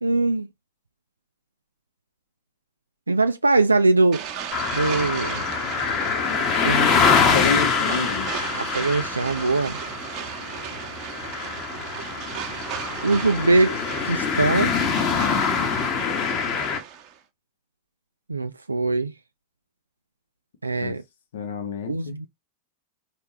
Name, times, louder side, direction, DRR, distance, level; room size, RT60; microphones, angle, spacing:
voice 1, 0.0-0.5 3.1-4.2 4.7-5.5 6.6-7.1 8.5-9.8 13.0-13.8 14.1-14.7 18.3-19.1 20.6-21.0 21.9-22.3, right 3 dB, 80° right, 0.3 m, -22 dB
sound 1, 4.1-17.2, right 8 dB, 40° right, 1.0 m, -35 dB
sound 2, 4.5-16.8, left 6 dB, 35° left, 1.2 m, -24 dB
voice 2, 7.2-8.3 20.8-21.0 21.3-22.2, left 6 dB, 60° left, 1.0 m, -28 dB
4.5 x 3.3 x 2.9 m
figure-of-eight pair, 90°, 0 cm